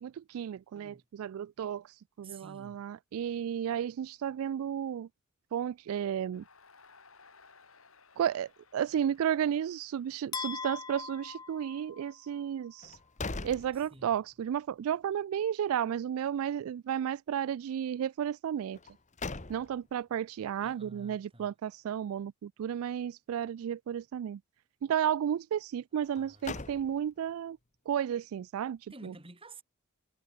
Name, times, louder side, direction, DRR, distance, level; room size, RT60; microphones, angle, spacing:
voice 1, 0.0-5.1 5.5-6.4 8.2-13.0 13.4-18.8 19.5-24.4 24.8-27.6 27.9-29.1, right 9 dB, 80° right, 0.3 m, -33 dB
voice 2, 2.2-2.8 13.9-14.2 20.6-21.5 26.2-26.8 28.9-29.6, right 2 dB, 25° right, 3.7 m, -51 dB
Crowd, 6.3-11.5, left 4 dB, 80° left, 7.0 m, -61 dB
sound 1, 10.3-12.5, left 5 dB, 20° left, 0.7 m, -41 dB
sound 2, 12.8-14.4 14.8-14.9 18.7-20.0 26.0-27.3, left 3 dB, 35° left, 1.4 m, -41 dB
head